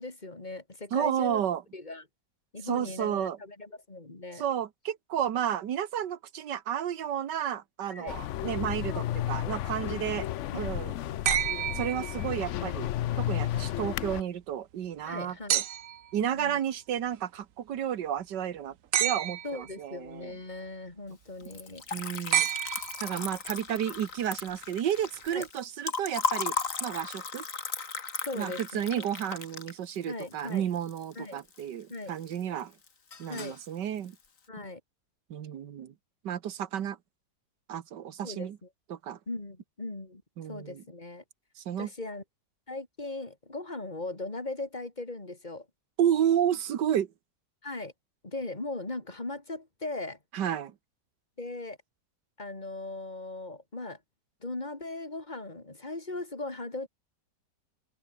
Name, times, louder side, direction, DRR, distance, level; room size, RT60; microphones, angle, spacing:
voice 1, 0.0-1.4 1.7-2.1 2.5-4.4 7.9-8.2 9.8-10.2 15.0-15.6 16.2-16.6 19.4-21.8 25.3-25.5 28.3-29.0 30.1-30.6 31.1-31.4 31.9-32.1 33.3-33.6 34.5-34.8 38.2-38.7 39.3-40.2 40.5-41.2 41.8-42.2 42.7-45.7 47.6-47.9 48.2-50.2 51.4-51.8 52.4-54.0 54.4-56.9, left 2 dB, 25° left, 3.2 m, -39 dB
voice 2, 0.9-1.6 2.6-3.4 4.4-10.3 10.5-11.0 11.8-12.9 13.2-15.6 16.1-18.7 19.0-20.3 21.9-22.5 23.0-26.5 26.8-27.4 28.3-32.7 33.2-34.2 35.3-35.9 36.2-37.0 37.7-38.6 38.9-39.2 40.4-40.8 41.7-41.9 46.0-47.1 50.3-50.7, right 10 dB, 75° right, 1.8 m, -31 dB
sound 1, 8.1-14.2, left 13 dB, 75° left, 0.7 m, -33 dB
sound 2, 11.3-12.6 15.5-16.1 18.9-19.7 22.3-23.4 24.9-25.0, right 11 dB, 55° right, 1.0 m, -29 dB
Liquid, 21.4-31.6 31.9-32.6 32.9-33.6, left 5 dB, 50° left, 2.3 m, -36 dB
omnidirectional pair, 1.9 m